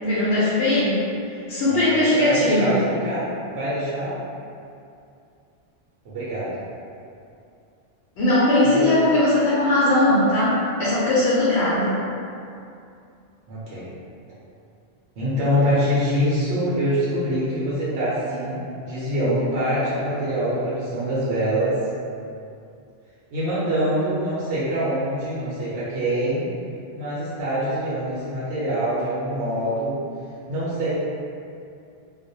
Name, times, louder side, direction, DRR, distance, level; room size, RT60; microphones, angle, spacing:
voice 1, 0.0-1.0 1.5-2.8 8.2-11.9, left 1 dB, 85° left, -10 dB, 0.9 m, -19 dB
voice 2, 1.7-4.2 6.0-6.5 8.7-8.9 13.5-13.9 15.2-21.8 23.3-26.5 26.9-30.0 30.5-30.9, equal, 80° right, -10 dB, 0.9 m, -25 dB
2.4 x 2.0 x 2.6 m, 2.5 s
omnidirectional pair, 1.1 m